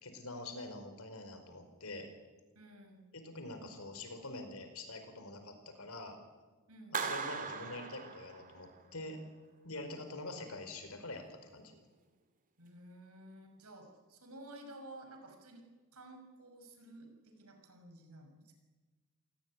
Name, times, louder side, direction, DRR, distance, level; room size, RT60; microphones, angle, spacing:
voice 1, 0.0-2.1 3.1-6.2 7.0-9.2 9.6-11.7, left 2 dB, 70° left, 7 dB, 4.9 m, -45 dB
voice 2, 2.5-3.1 6.7-7.0 12.6-15.6 15.9-18.5, right 1 dB, 80° right, 5 dB, 5.8 m, -53 dB
Clapping, 6.9-8.8, right 5 dB, 40° right, 2.5 m, -39 dB
27.5 x 18.0 x 9.7 m, 1.3 s
head